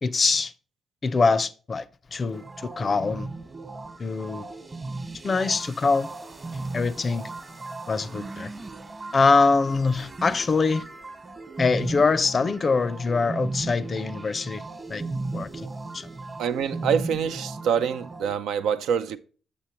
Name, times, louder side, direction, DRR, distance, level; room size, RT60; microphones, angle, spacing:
voice 1, 0.0-0.5 1.0-1.9 2.1-3.3 4.0-4.5 5.2-6.1 6.7-7.3 7.9-8.5 9.1-10.8 11.6-14.6 14.9-15.0 15.3-15.7 15.9-16.1, left 4 dB, 45° left, 0.5 m, -23 dB
sound 1, 2.3-18.3, right 3 dB, 35° right, 1.2 m, -36 dB
voice 2, 16.4-19.2, right 7 dB, 75° right, 0.4 m, -25 dB
7.1 x 7.0 x 2.9 m
hypercardioid pair, 45°, 0 cm